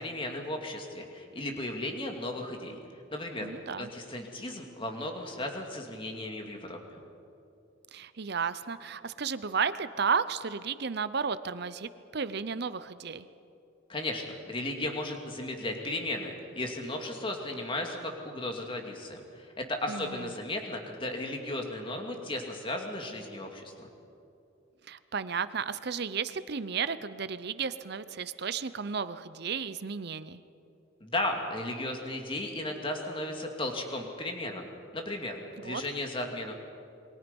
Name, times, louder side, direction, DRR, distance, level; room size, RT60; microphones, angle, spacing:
voice 1, 0.0-2.8 3.1-3.5 3.8-7.0 13.9-23.9 31.0-34.7 34.9-36.5, left 1 dB, 25° left, 2 dB, 2.5 m, -35 dB
voice 2, 3.4-3.9 7.9-13.3 19.9-20.3 24.9-30.4 35.6-35.8, right 6 dB, 55° right, 14 dB, 0.7 m, -33 dB
28.5 x 23.0 x 5.4 m, 2.7 s
head